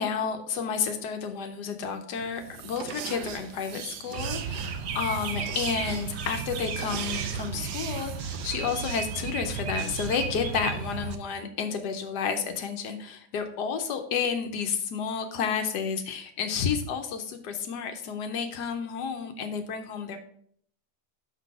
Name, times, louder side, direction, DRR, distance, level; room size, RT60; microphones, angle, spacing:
voice 1, 0.0-20.2, left 6 dB, 85° left, 6 dB, 1.3 m, -31 dB
sound 1, 2.1-8.5, right 8 dB, 90° right, 1.3 m, -40 dB
sound 2, 4.1-11.2, right 6 dB, 60° right, 0.7 m, -34 dB
6.0 x 5.4 x 4.7 m, 0.63 s
omnidirectional pair, 1.7 m